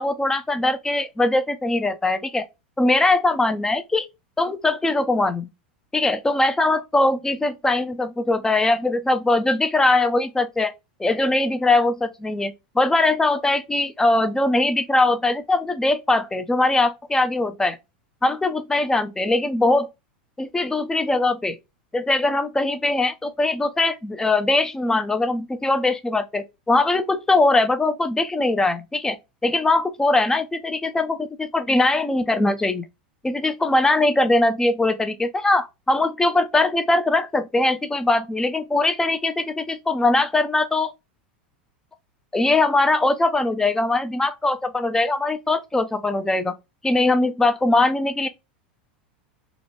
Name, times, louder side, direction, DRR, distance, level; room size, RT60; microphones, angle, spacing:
voice 1, 0.0-2.5 2.8-4.1 4.4-5.5 5.9-10.7 11.0-17.8 18.2-19.9 20.4-21.6 21.9-29.2 29.4-32.9 33.2-40.9 42.3-46.5 46.8-48.3, left 2 dB, 10° left, 0.4 m, -21 dB
2.8 x 2.1 x 2.5 m
hypercardioid pair, 90°, 5 cm